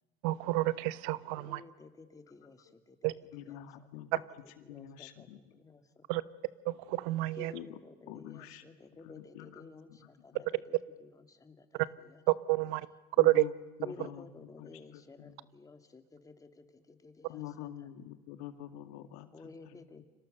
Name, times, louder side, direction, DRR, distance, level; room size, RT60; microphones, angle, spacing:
voice 1, 0.2-1.6 3.0-3.1 6.1-6.2 6.7-7.5 12.5-12.9 13.2-13.4, right 19 dB, 85° right, 16 dB, 1.1 m, -29 dB
voice 2, 1.4-3.1 3.4-3.6 4.4-6.2 7.4-11.8 12.1-12.2 13.8-17.4 19.3-20.0, left 3 dB, 20° left, 7 dB, 2.6 m, -53 dB
voice 3, 3.3-4.2 4.7-5.6 7.5-7.8 8.1-8.6 9.0-10.4 13.2-13.5 13.8-15.4 17.3-20.0, left 12 dB, 85° left, 9 dB, 2.1 m, -47 dB
30.0 x 26.0 x 6.7 m, 1.1 s
cardioid pair, 120°, 19 cm